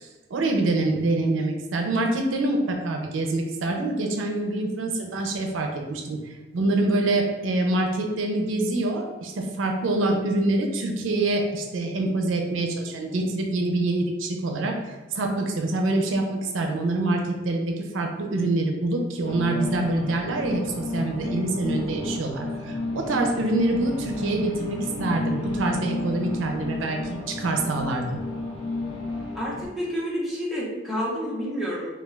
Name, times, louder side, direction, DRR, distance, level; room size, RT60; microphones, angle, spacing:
voice 1, 0.0-28.2, right 2 dB, 90° right, 3 dB, 0.4 m, -26 dB
sound 1, 19.3-29.7, left 2 dB, 75° left, 0.5 m, -32 dB
voice 2, 29.3-31.9, equal, ahead, -7 dB, 0.6 m, -29 dB
2.3 x 2.3 x 3.1 m, 1.3 s
head